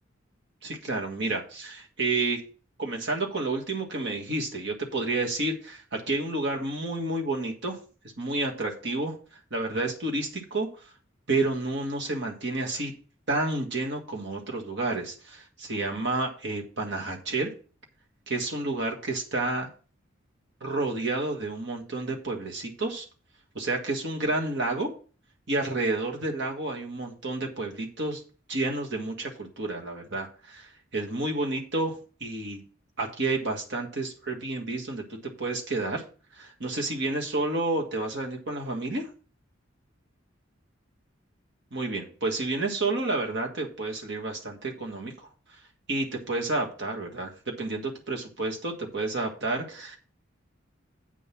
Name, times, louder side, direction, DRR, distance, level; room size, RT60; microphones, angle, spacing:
voice 1, 0.6-2.4 2.8-7.8 8.2-9.2 9.5-10.7 11.3-12.9 13.3-17.5 18.3-19.7 20.6-23.0 23.5-24.9 25.5-28.2 28.5-32.6 33.0-36.0 36.3-39.1 41.7-45.1 45.9-50.0, right 2 dB, 60° right, 1 dB, 1.7 m, -30 dB
8.3 x 4.0 x 7.0 m, 0.37 s
head